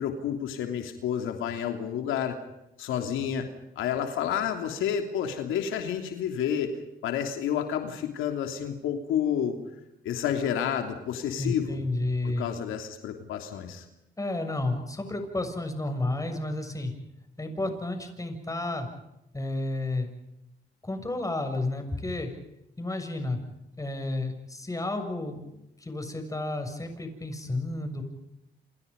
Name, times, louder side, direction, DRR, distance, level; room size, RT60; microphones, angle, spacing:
voice 1, 0.0-2.4 2.8-3.5 3.7-9.6 10.0-11.8 12.2-13.8, left 9 dB, 90° left, 5 dB, 3.1 m, -30 dB
voice 2, 11.4-12.5 14.2-16.9 17.4-18.9 19.3-20.1 20.8-22.3 22.8-23.4 23.8-28.0, left 2 dB, 15° left, 6 dB, 7.0 m, -31 dB
28.5 x 28.5 x 5.4 m, 0.84 s
cardioid pair, 90°, 20 cm